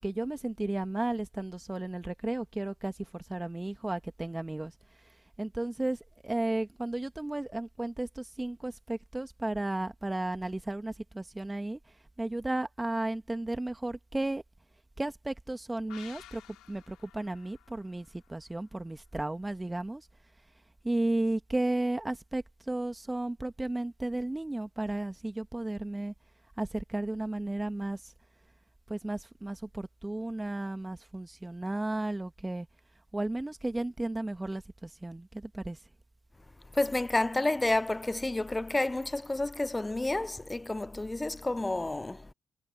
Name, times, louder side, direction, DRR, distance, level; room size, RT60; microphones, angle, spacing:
voice 1, 0.0-4.7 5.4-11.8 12.2-14.4 15.0-16.4 16.7-20.1 20.8-26.1 26.6-28.1 28.9-32.7 33.1-35.8, right 2 dB, 15° right, 2.1 m, -34 dB
sound 1, 15.9-19.4 19.7-19.8, left 15 dB, 80° left, 6.4 m, -55 dB
voice 2, 36.7-42.3, left 2 dB, 20° left, 0.5 m, -30 dB
hypercardioid pair, 50°, 0 cm